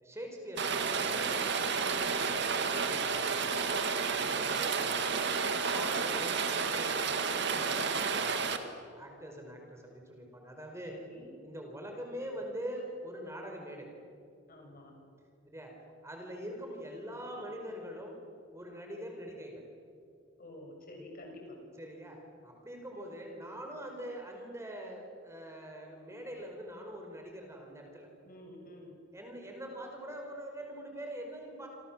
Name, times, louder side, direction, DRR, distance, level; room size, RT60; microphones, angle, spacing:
voice 1, 0.0-3.5 4.1-5.0 5.7-11.0 11.4-13.9 15.5-15.7 16.0-18.2 18.5-19.6 21.8-28.1 29.1-31.7, equal, 15° right, 2 dB, 4.7 m, -44 dB
Rain, 0.6-8.6, right 5 dB, 60° right, 2.1 m, -31 dB
voice 2, 10.8-11.3 14.5-15.0 20.4-21.6 28.2-29.0, left 1 dB, 45° left, 2 dB, 6.6 m, -49 dB
27.5 x 27.5 x 7.4 m, 2.4 s
head